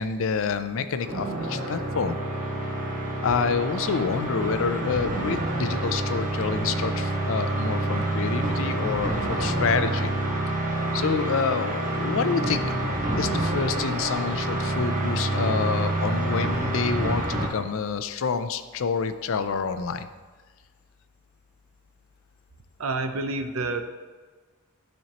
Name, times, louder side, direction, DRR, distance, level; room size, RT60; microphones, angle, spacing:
voice 1, 0.0-2.2 3.2-10.1 10.9-12.7 13.2-20.1, left 5 dB, 65° left, 10 dB, 0.4 m, -28 dB
sound 1, 1.0-17.5, right 2 dB, 35° right, 1.4 m, -27 dB
voice 2, 22.8-23.8, right 3 dB, 75° right, 8 dB, 0.6 m, -28 dB
12.0 x 4.3 x 2.9 m, 1.4 s
head